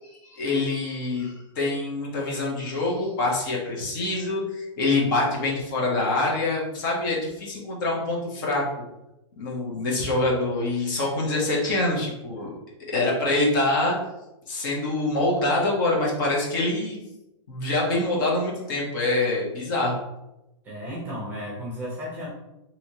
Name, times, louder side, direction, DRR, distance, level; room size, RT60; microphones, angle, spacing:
voice 1, 0.1-8.7 9.4-12.5 12.9-14.0 14.5-17.0 17.5-20.0, left 2 dB, 40° left, -3 dB, 0.9 m, -25 dB
voice 2, 20.6-22.3, equal, 10° right, -6 dB, 0.8 m, -34 dB
3.1 x 2.8 x 2.8 m, 0.95 s
hypercardioid pair, 170°, 16 cm